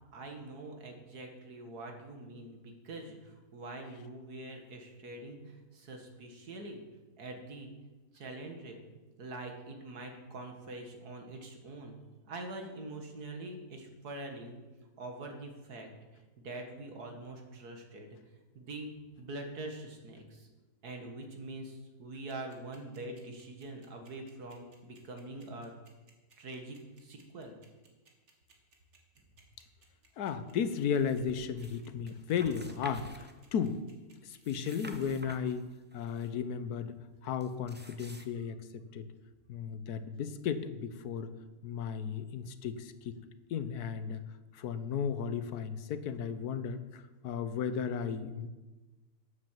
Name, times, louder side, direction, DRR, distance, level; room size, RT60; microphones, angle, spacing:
voice 1, 0.1-6.8 7.2-7.7 8.1-8.8 9.2-12.0 12.2-14.6 15.0-15.9 16.4-18.1 18.5-20.5 20.8-25.7 26.4-27.6, right 2 dB, 85° right, 3 dB, 2.2 m, -44 dB
sound 1, 22.3-35.0, right 4 dB, 50° right, 2.0 m, -63 dB
voice 2, 30.2-33.8 34.2-37.0 37.2-39.1 39.5-41.3 41.6-43.2 43.5-44.2 44.5-48.5, left 7 dB, 85° left, 12 dB, 1.3 m, -35 dB
sound 2, 30.8-31.8 32.1-33.8 34.3-36.3 37.4-38.3, right 1 dB, 15° right, 0.4 m, -51 dB
9.6 x 8.7 x 7.5 m, 1.2 s
omnidirectional pair, 1.6 m